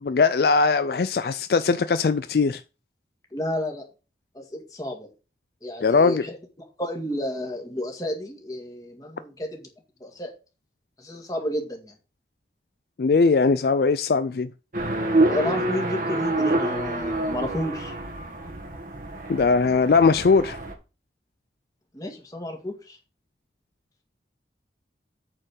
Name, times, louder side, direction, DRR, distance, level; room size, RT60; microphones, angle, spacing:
voice 1, 0.0-2.6 5.8-6.2 13.0-14.5 19.3-20.6, left 4 dB, 60° left, 0.4 m, -20 dB
voice 2, 3.3-3.9 4.3-5.1 5.6-6.4 6.8-9.7 10.0-10.3 11.0-11.9 15.2-18.0 21.9-23.0, left 1 dB, 20° left, 2.0 m, -31 dB
sound 1, 14.7-20.7, right 2 dB, 50° right, 1.4 m, -27 dB
8.8 x 4.4 x 6.4 m
head